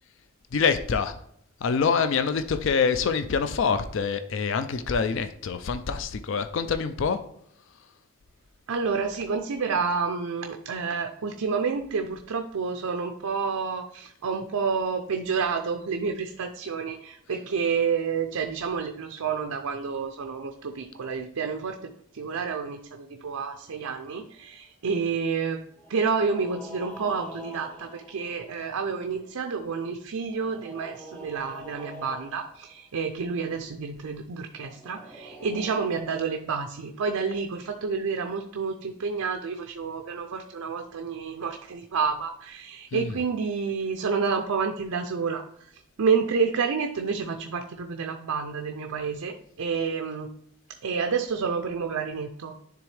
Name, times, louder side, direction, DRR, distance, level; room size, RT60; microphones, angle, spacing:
voice 1, 0.5-1.2 1.6-7.2 42.9-43.2, left 5 dB, 55° left, 10 dB, 0.4 m, -25 dB
voice 2, 8.7-25.6 25.9-45.4 46.0-50.3 50.8-52.6, right 5 dB, 75° right, 5 dB, 0.5 m, -29 dB
sound 1, 23.7-24.6 25.7-29.3 30.3-32.7 34.6-36.0, equal, 5° left, 0.7 m, -45 dB
10.5 x 3.5 x 3.3 m, 0.71 s
head